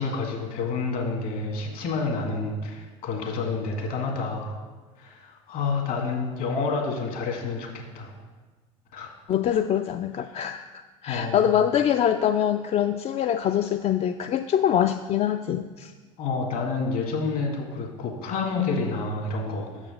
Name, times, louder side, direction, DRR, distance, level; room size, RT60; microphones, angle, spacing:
voice 1, 0.0-4.6 5.0-7.7 7.9-8.1 8.9-9.1 11.1-11.4 16.2-19.7, left 4 dB, 55° left, 1 dB, 1.9 m, -29 dB
voice 2, 9.3-15.9, left 9 dB, 40° left, 8 dB, 0.4 m, -24 dB
6.8 x 4.9 x 6.4 m, 1.3 s
hypercardioid pair, 70°, 17 cm